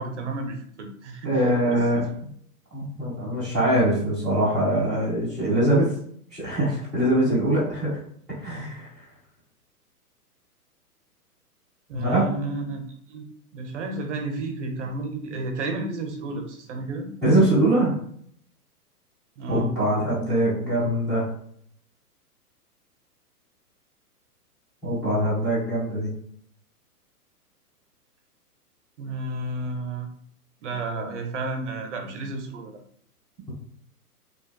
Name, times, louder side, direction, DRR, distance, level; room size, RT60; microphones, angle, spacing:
voice 1, 0.0-1.3 1.7-2.0 11.9-12.8 13.1-13.3 13.5-17.1 19.4-19.7 29.0-30.1 30.6-32.8, right 2 dB, 50° right, 4 dB, 0.6 m, -32 dB
voice 2, 1.2-2.0 2.7-5.9 6.3-8.0 8.4-8.9 11.9-12.2 17.2-18.0 19.5-21.3 24.8-26.1, right 1 dB, ahead, -15 dB, 0.4 m, -23 dB
2.6 x 2.2 x 2.2 m, 0.62 s
figure-of-eight pair, 120°, 47 cm